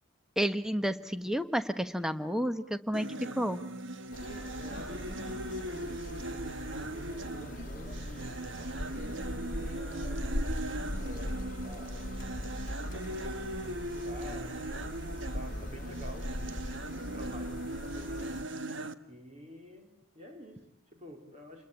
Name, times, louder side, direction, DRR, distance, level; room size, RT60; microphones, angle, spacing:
voice 1, 0.4-3.6, equal, 5° right, 10 dB, 1.1 m, -31 dB
sound 1, 2.9-18.9, right 1 dB, 65° right, 1.4 m, -39 dB
sound 2, 4.1-18.4, left 1 dB, 40° left, 1.7 m, -40 dB
voice 2, 4.2-10.2 10.9-12.2 12.9-14.8 15.1-16.6 16.9-18.4 19.1-21.7, equal, 35° right, 3 dB, 4.2 m, -49 dB
28.5 x 21.5 x 8.5 m, 0.69 s
head